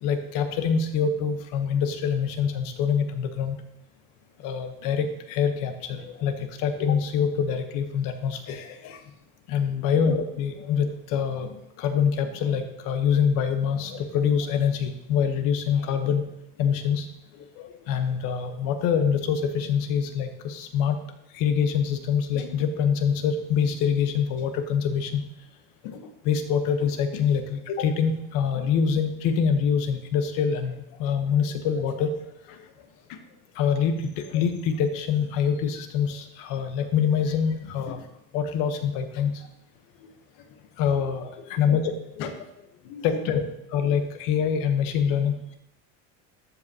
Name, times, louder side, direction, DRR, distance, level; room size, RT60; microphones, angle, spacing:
voice 1, 0.0-3.6 4.4-9.0 9.5-16.2 16.6-17.1 17.4-21.0 21.3-25.2 25.8-32.1 32.5-32.6 33.1-33.2 33.5-38.0 38.3-39.4 40.8-42.4 42.8-43.4 43.7-45.5, left 7 dB, 65° left, 7 dB, 1.0 m, -25 dB
12.5 x 5.4 x 2.8 m, 0.84 s
cardioid pair, 155°, 36 cm